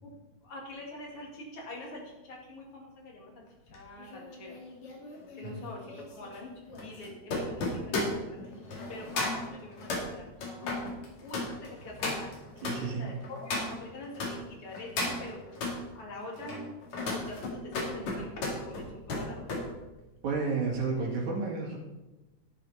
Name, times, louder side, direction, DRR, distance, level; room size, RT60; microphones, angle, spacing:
voice 1, 0.4-3.4 3.7-4.5 5.4-5.8 6.1-6.5 6.8-8.4 8.9-10.7 11.2-12.3 13.0-15.7 15.9-16.7 17.0-18.3 18.6-18.8 19.1-19.5, left 2 dB, 50° left, -1 dB, 3.2 m, -44 dB
sound 1, 3.7-14.3 14.7-15.8 16.3-19.7 20.0-20.3, left 2 dB, 70° left, 3.7 m, -35 dB
voice 2, 12.6-13.2 20.2-21.8, right 4 dB, 80° right, -2 dB, 3.9 m, -31 dB
11.0 x 10.5 x 4.3 m, 1.1 s
omnidirectional pair, 3.3 m